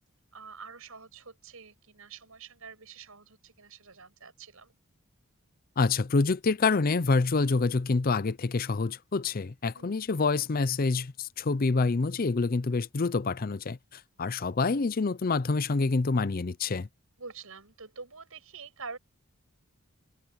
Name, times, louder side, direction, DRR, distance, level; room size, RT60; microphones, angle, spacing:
voice 1, 0.3-4.8 9.7-10.1 17.2-19.0, right 5 dB, 75° right, 5.8 m, -46 dB
voice 2, 5.8-16.9, left 3 dB, 40° left, 0.5 m, -27 dB
head